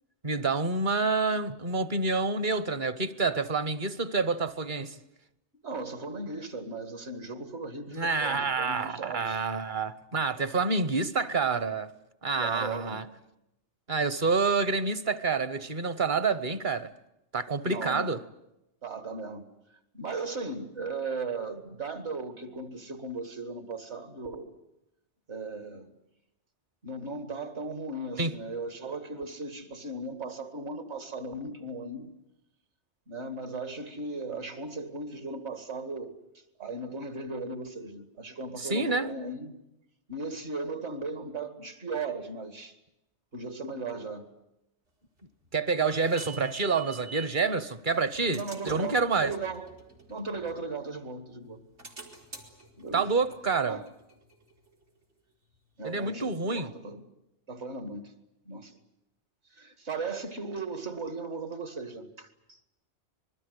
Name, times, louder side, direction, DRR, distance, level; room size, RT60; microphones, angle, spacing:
voice 1, 0.2-5.0 7.9-11.9 12.2-13.0 13.9-16.9 17.3-18.2 28.2-28.3 38.6-39.1 45.5-49.3 52.9-53.8 55.8-56.7, right 4 dB, 45° right, 1.1 m, -28 dB
voice 2, 5.6-9.4 12.4-13.0 17.6-18.1 18.8-19.5 19.9-24.5 25.3-25.9 26.8-32.1 33.1-36.2 36.6-39.5 40.1-42.7 43.3-44.3 48.3-49.7 50.1-51.6 52.8-53.1 53.7-53.9 55.8-57.0 57.5-58.1 58.5-58.8 59.5-62.6, right 3 dB, 70° right, 2.5 m, -37 dB
sound 1, 45.2-47.4 47.9-51.0 51.5-54.9, right 3 dB, 85° right, 3.9 m, -48 dB
26.0 x 21.5 x 8.2 m
omnidirectional pair, 1.2 m